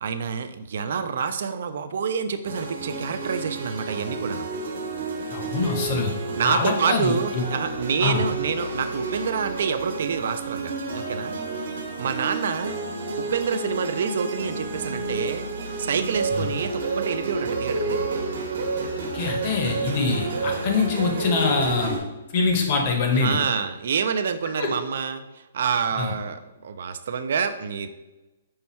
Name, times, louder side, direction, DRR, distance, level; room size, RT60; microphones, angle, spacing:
voice 1, 0.0-4.5 6.3-11.4 12.0-12.7 13.2-18.2 23.1-25.2 25.5-27.9, right 6 dB, 55° right, 10 dB, 0.3 m, -27 dB
sound 1, 2.4-22.0, right 3 dB, 70° right, 1.1 m, -30 dB
voice 2, 5.3-6.1 6.4-7.4 8.0-8.2 16.3-16.4 19.1-21.9 22.3-23.4 24.6-24.7 26.0-26.1, left 4 dB, 30° left, 3 dB, 0.7 m, -24 dB
5.6 x 2.2 x 4.1 m, 1.1 s
hypercardioid pair, 170°, 0 cm